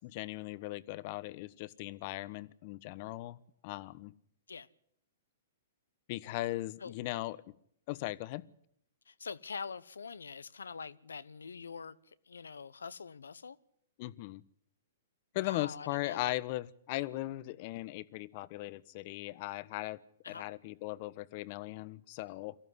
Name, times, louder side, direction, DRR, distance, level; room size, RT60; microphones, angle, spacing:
voice 1, 0.0-3.4 3.6-4.1 6.1-7.4 7.9-8.5 14.0-14.4 15.3-20.0 20.3-22.6, left 18 dB, 45° left, 1.1 m, -38 dB
voice 2, 9.1-13.6 15.3-16.3 20.2-20.4, left 5 dB, 85° left, 1.1 m, -44 dB
24.0 x 14.5 x 9.7 m
hypercardioid pair, 120°, 0 cm